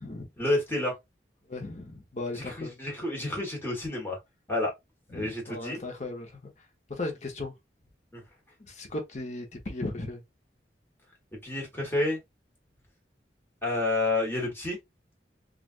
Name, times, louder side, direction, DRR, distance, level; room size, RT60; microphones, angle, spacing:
voice 1, 0.4-0.9 2.4-4.2 4.5-4.7 5.1-5.8 8.1-8.2 11.4-12.2 13.6-14.8, left 2 dB, 15° left, 1.2 m, -29 dB
voice 2, 1.5-2.7 5.1-6.5 6.9-7.5 8.7-10.2, left 2 dB, 40° left, 0.9 m, -36 dB
3.2 x 2.5 x 2.4 m
head